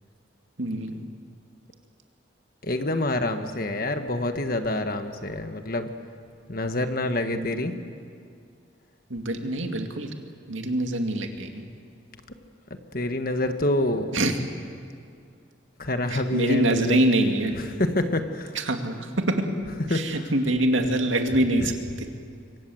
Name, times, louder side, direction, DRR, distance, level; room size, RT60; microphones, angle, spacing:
voice 1, 0.6-1.0 7.3-7.5 9.1-10.1 10.5-11.6 14.1-14.3 16.1-17.5 18.6-19.4 19.9-21.7 22.0-22.1, right 1 dB, 85° right, 4 dB, 2.4 m, -24 dB
voice 2, 2.6-5.9 6.5-7.7 12.9-14.1 15.8-17.0 17.5-18.6 19.9-20.3 21.6-21.7, left 1 dB, 50° left, 7 dB, 1.5 m, -27 dB
26.5 x 24.5 x 7.9 m, 2.3 s
head